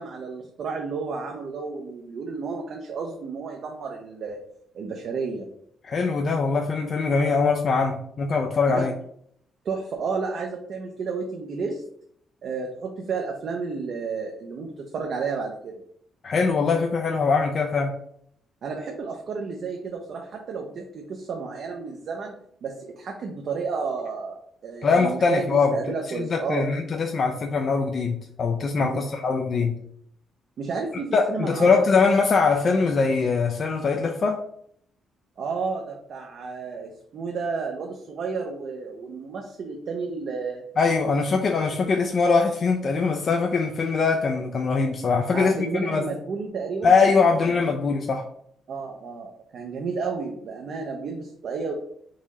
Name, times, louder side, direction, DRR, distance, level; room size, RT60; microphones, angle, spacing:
voice 1, 0.0-4.4 4.7-5.5 8.7-8.9 9.6-11.8 12.4-15.8 18.6-26.7 28.8-29.0 30.6-31.9 35.4-40.7 45.3-46.9 48.7-51.7, right 4 dB, 60° right, 2 dB, 0.5 m, -32 dB
voice 2, 5.8-8.9 16.2-17.9 24.8-25.8 26.2-29.8 31.1-34.4 40.8-46.0 46.8-48.2, left 4 dB, 50° left, 2 dB, 0.4 m, -22 dB
3.8 x 2.6 x 3.0 m, 0.68 s
cardioid pair, 90°, 0 cm